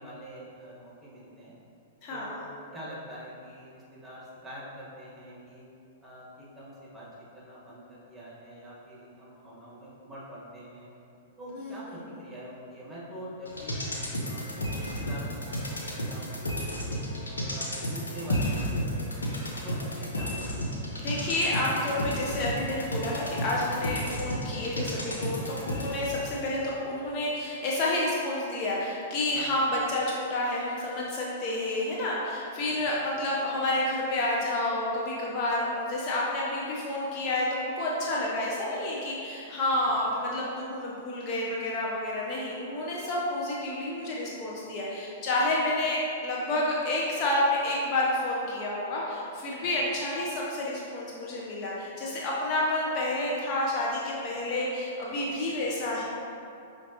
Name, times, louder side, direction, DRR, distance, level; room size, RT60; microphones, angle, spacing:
voice 1, 0.0-1.6 2.1-2.4 2.7-5.6 6.0-10.9 11.4-14.5 14.8-17.0 17.5-19.1 19.6-20.6 29.3-29.6 32.7-32.8 39.7-39.9 49.6-49.7, equal, 10° right, -7 dB, 1.4 m, -45 dB
voice 2, 2.0-2.4 11.5-11.8 21.0-56.0, left 1 dB, 40° left, -5 dB, 0.6 m, -29 dB
sound 1, 13.5-26.3 26.6-26.7, equal, 85° left, 0.7 m, -32 dB
5.3 x 3.2 x 2.8 m, 2.7 s
hypercardioid pair, 110°, 0 cm